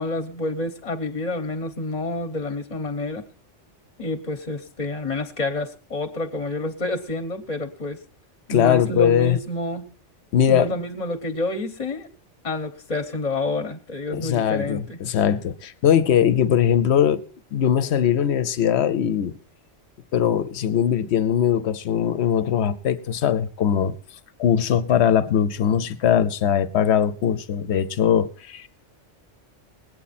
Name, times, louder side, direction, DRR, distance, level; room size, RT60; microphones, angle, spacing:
voice 1, 0.0-3.2 4.0-8.0 8.5-9.9 10.5-12.1 12.4-15.0, left 2 dB, 35° left, 1.0 m, -28 dB
voice 2, 8.5-9.4 10.3-10.7 14.1-17.2 17.5-19.3 20.1-23.9 24.4-28.7, left 9 dB, 65° left, 1.0 m, -20 dB
19.5 x 8.6 x 4.2 m
omnidirectional pair, 1.2 m